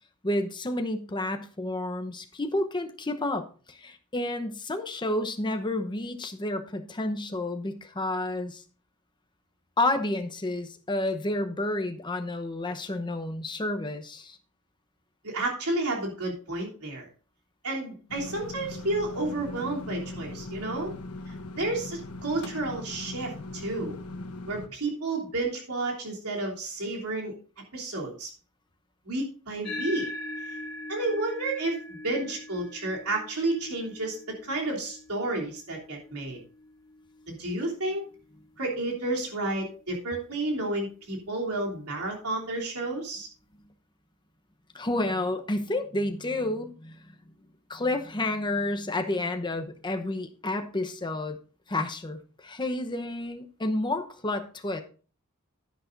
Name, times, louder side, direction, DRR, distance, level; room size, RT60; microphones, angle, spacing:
voice 1, 0.2-8.6 9.8-14.4 44.7-47.1 47.7-51.4 51.7-54.8, left 2 dB, 20° left, 6 dB, 0.9 m, -30 dB
voice 2, 15.2-17.1 17.6-20.9 21.3-24.0 24.5-27.3 27.7-28.3 29.0-30.1 30.9-36.4 37.3-38.1 38.6-43.3, right 2 dB, 85° right, -1 dB, 3.2 m, -31 dB
sound 1, 18.1-24.7, left 2 dB, 85° left, 1.1 m, -40 dB
sound 2, 29.6-38.4, left 1 dB, 45° left, 4.1 m, -42 dB
10.5 x 10.5 x 2.6 m, 0.38 s
head